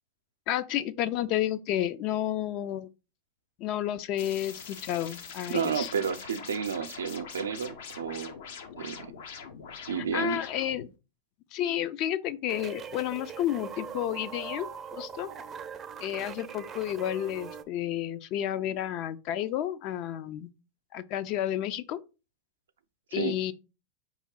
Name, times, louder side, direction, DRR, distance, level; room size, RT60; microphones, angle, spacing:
voice 1, 0.5-2.9 3.6-5.9 10.0-10.9 11.5-15.3 16.0-20.5 20.9-22.0 23.1-23.5, left 12 dB, 50° left, 0.4 m, -31 dB
sound 1, 4.2-10.9, left 6 dB, 75° left, 0.8 m, -44 dB
voice 2, 5.5-8.3 8.8-9.1 9.9-10.4 23.1-23.3, right 7 dB, 90° right, 0.4 m, -31 dB
sound 2, 12.5-17.6, right 7 dB, 25° right, 0.4 m, -41 dB
4.6 x 3.0 x 3.7 m
hypercardioid pair, 110°, 0 cm